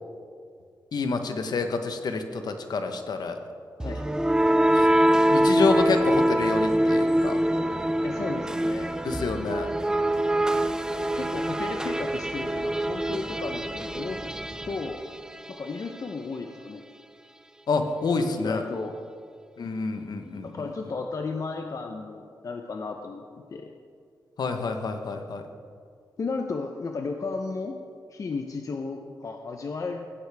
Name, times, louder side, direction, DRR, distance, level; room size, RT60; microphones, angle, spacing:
voice 1, 0.9-3.4 4.7-4.9 5.3-7.4 9.0-9.7 17.7-18.6 19.6-20.7 24.4-25.4, left 4 dB, 65° left, 6 dB, 1.0 m, -28 dB
sound 1, 3.8-15.7, right 1 dB, 10° right, 0.4 m, -24 dB
voice 2, 8.0-8.9 11.1-14.4 14.7-15.0 15.5-16.8 18.4-19.0 20.4-23.2 23.5-23.7 26.2-27.8 28.1-30.1, left 4 dB, 50° left, 4 dB, 0.7 m, -34 dB
16.0 x 9.7 x 3.5 m, 2.2 s
cardioid pair, 95°, 7 cm